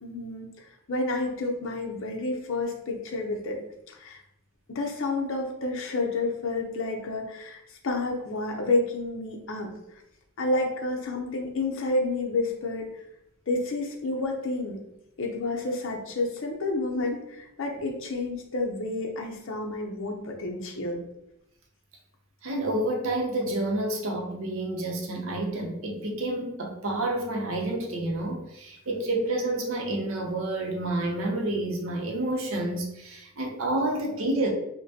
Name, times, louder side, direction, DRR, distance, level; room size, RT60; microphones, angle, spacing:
voice 1, 0.0-0.5 0.9-3.6 3.9-4.2 4.7-9.7 10.4-12.9 13.5-14.8 15.2-21.0, left 2 dB, 60° left, 0 dB, 0.6 m, -30 dB
voice 2, 22.4-34.5, right 1 dB, 65° right, 1 dB, 0.7 m, -29 dB
5.3 x 2.2 x 2.8 m, 0.83 s
head